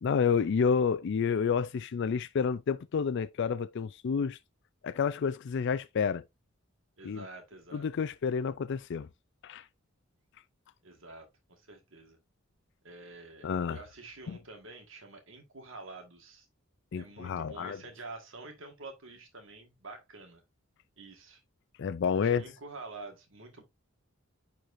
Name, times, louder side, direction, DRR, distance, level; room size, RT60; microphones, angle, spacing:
voice 1, 0.0-4.4 4.8-6.2 7.0-7.2 7.7-9.1 9.4-9.7 13.4-13.8 14.3-14.4 16.9-17.8 21.8-22.5, left 6 dB, 60° left, 0.4 m, -29 dB
voice 2, 7.0-7.9 10.8-12.2 12.8-16.5 16.9-20.4 21.0-21.4 22.2-23.6, right 3 dB, 65° right, 1.7 m, -48 dB
9.6 x 4.6 x 2.6 m
head